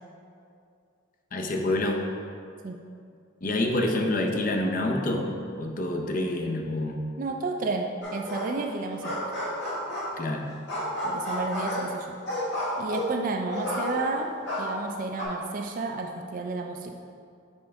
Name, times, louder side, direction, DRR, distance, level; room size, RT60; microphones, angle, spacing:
voice 1, 1.3-2.0 3.4-5.3 5.6-7.0 10.2-10.4, left 1 dB, 45° left, 2 dB, 0.6 m, -27 dB
voice 2, 7.2-9.2 11.0-12.2 12.8-17.0, right 3 dB, 45° right, 4 dB, 0.3 m, -32 dB
sound 1, 8.0-8.6 8.9-10.3 10.7-14.2 14.5-15.3, left 1 dB, 60° left, 1.5 m, -31 dB
5.3 x 5.2 x 3.4 m, 2.4 s
head